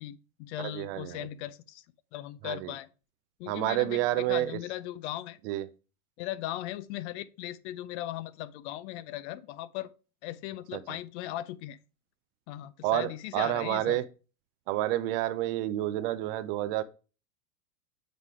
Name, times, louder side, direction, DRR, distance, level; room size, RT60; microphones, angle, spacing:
voice 1, 0.0-1.8 2.1-2.9 3.4-4.0 4.3-5.4 6.2-9.9 10.2-11.8 12.5-14.0, left 14 dB, 50° left, 0.5 m, -38 dB
voice 2, 0.6-1.3 2.4-2.7 3.5-4.5 5.4-5.7 10.7-10.8 12.8-14.0 14.7-16.8, right 15 dB, 40° right, 0.4 m, -29 dB
7.7 x 3.3 x 4.7 m
hypercardioid pair, 115°, 47 cm